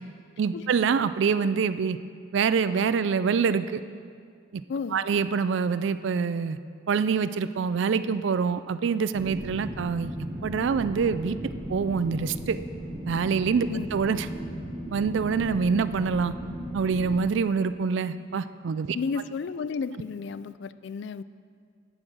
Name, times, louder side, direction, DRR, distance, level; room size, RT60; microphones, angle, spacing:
voice 1, 0.4-2.0 2.3-3.8 4.5-4.6 4.9-6.6 6.9-10.1 10.4-11.4 11.7-12.6 13.1-14.3 14.9-16.3 16.7-19.0, right 5 dB, 65° right, 13 dB, 0.3 m, -25 dB
voice 2, 4.7-5.0 13.7-13.9 18.9-21.2, left 5 dB, 60° left, 16 dB, 0.3 m, -32 dB
sound 1, 9.1-17.1, equal, 20° right, 1.2 m, -36 dB
9.9 x 8.6 x 6.3 m, 2.1 s
head